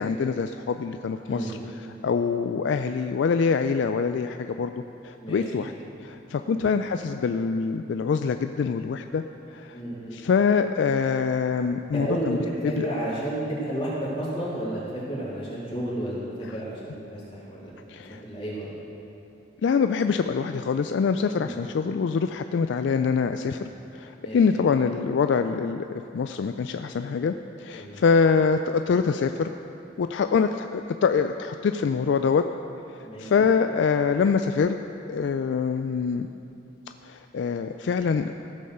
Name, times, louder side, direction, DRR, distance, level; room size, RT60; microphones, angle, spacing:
voice 1, 0.0-1.6 2.0-4.7 5.0-5.7 6.0-9.2 9.5-9.8 10.1-12.4 12.8-12.9 16.5-16.6 17.9-18.2 19.6-25.8 26.1-29.5 30.0-32.4 32.9-34.8 35.1-36.3 37.0-38.3, left 5 dB, 65° left, 8 dB, 0.3 m, -24 dB
voice 2, 9.7-10.2 11.9-17.7 18.2-18.7 21.4-21.5 24.1-24.4 27.7-28.0 33.0-33.3, right 1 dB, 30° left, -8 dB, 3.1 m, -31 dB
15.0 x 5.5 x 6.6 m, 2.8 s
head